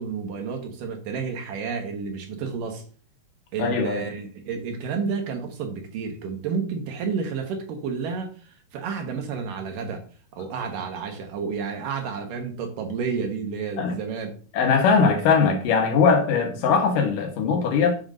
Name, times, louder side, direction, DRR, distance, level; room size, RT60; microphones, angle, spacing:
voice 1, 0.0-2.8 3.5-10.0 10.3-14.4, right 5 dB, 85° right, 2.9 m, -30 dB
voice 2, 3.6-4.1 13.8-14.0 14.5-18.0, left 5 dB, 90° left, 2.9 m, -20 dB
7.2 x 6.3 x 2.6 m
omnidirectional pair, 3.8 m